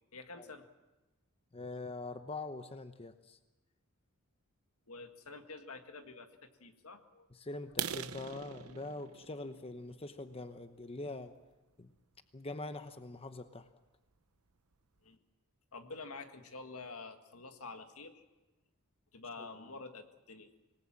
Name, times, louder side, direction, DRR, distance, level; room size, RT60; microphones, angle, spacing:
voice 1, 0.1-0.6 4.9-6.3 6.6-7.3 15.0-15.2 15.7-18.2 19.1-20.5, left 3 dB, 80° left, 7 dB, 1.8 m, -48 dB
voice 2, 1.5-3.4 7.3-11.3 11.8-11.9 12.3-13.7 19.4-19.7, left 2 dB, 25° left, 9 dB, 0.9 m, -44 dB
sound 1, 7.7-11.4 12.0-12.2 12.6-12.7 13.1-13.3 13.6-13.7 14.2-14.3 14.5-15.0, right 9 dB, 80° right, 0.8 m, -43 dB
26.5 x 19.0 x 7.5 m, 1.1 s
head